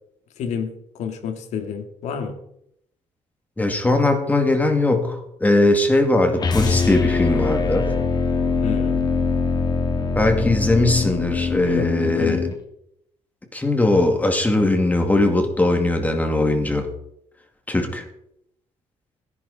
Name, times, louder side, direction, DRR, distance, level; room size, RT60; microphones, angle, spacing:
voice 1, 0.4-0.7 0.9-2.3 8.6-9.0 11.6-12.5, left 7 dB, 75° left, 6 dB, 2.2 m, -29 dB
voice 2, 3.6-7.9 10.2-12.5 13.5-16.9 17.7-18.0, left 2 dB, 15° left, 5 dB, 2.4 m, -20 dB
sound 1, 6.4-12.6, left 4 dB, 35° left, 2.0 m, -22 dB
17.0 x 11.0 x 4.2 m, 0.74 s
cardioid pair, 130°, 12 cm